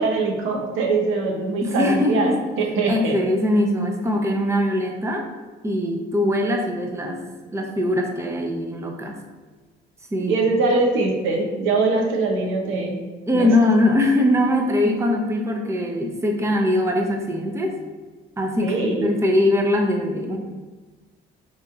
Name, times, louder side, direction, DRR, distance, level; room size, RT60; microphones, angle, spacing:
voice 1, 0.0-3.1 10.3-13.0 13.3-13.5 18.6-19.1, right 3 dB, 85° right, 1 dB, 0.7 m, -22 dB
voice 2, 1.6-2.4 2.9-5.3 5.6-7.2 7.5-9.2 10.1-10.4 13.3-17.8 18.4-20.4, left 1 dB, 15° right, 2 dB, 0.6 m, -21 dB
5.5 x 3.0 x 2.4 m, 1.3 s
cardioid pair, 90°, 20 cm